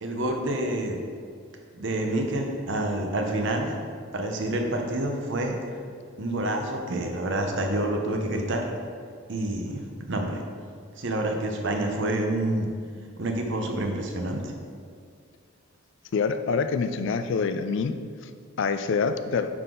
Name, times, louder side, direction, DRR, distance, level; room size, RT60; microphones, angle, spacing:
voice 1, 0.0-1.0 1.7-3.7 4.1-5.6 6.2-8.6 9.3-10.4 11.0-12.7 13.2-14.5, right 1 dB, 60° right, 3 dB, 0.9 m, -28 dB
voice 2, 16.1-18.0 18.6-19.5, left 5 dB, 60° left, 10 dB, 0.4 m, -26 dB
9.6 x 4.0 x 3.8 m, 2.1 s
head